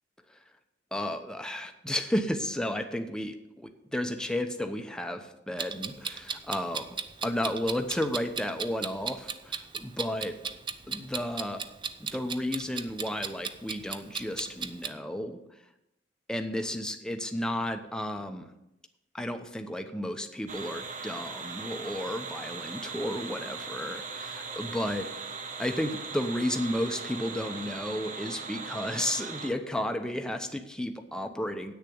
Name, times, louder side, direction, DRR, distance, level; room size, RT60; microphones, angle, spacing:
voice 1, 0.9-10.4 10.9-11.7 12.0-15.4 16.3-18.5 19.1-25.1 25.6-31.7, left 1 dB, 5° left, 6 dB, 0.9 m, -33 dB
Clock, 5.6-14.9, right 6 dB, 25° right, 0.5 m, -36 dB
sound 1, 20.5-29.5, right 4 dB, 45° right, 1.3 m, -39 dB
9.1 x 6.7 x 8.6 m, 0.86 s
head